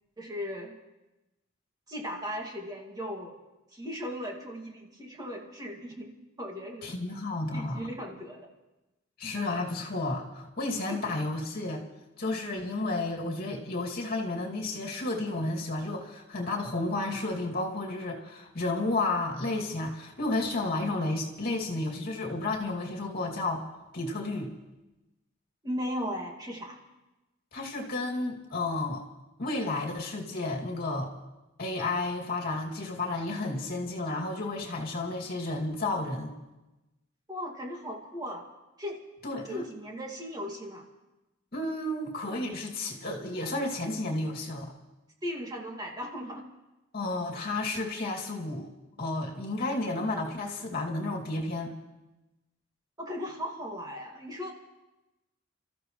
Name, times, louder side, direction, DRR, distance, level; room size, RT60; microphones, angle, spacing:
voice 1, 0.2-0.8 1.9-3.4 3.7-6.1 6.4-6.9 7.5-8.5 10.9-11.0 25.6-26.8 37.3-38.4 38.8-39.0 39.5-40.9 45.2-46.5 53.0-54.5, equal, 20° right, 0 dB, 2.3 m, -37 dB
voice 2, 6.8-7.8 9.2-11.8 12.2-24.5 27.5-29.0 29.4-31.1 31.6-36.3 39.2-39.6 41.5-44.7 46.9-48.7 49.0-51.7, left 2 dB, 50° left, -1 dB, 2.5 m, -32 dB
28.5 x 14.0 x 3.2 m, 1.0 s
head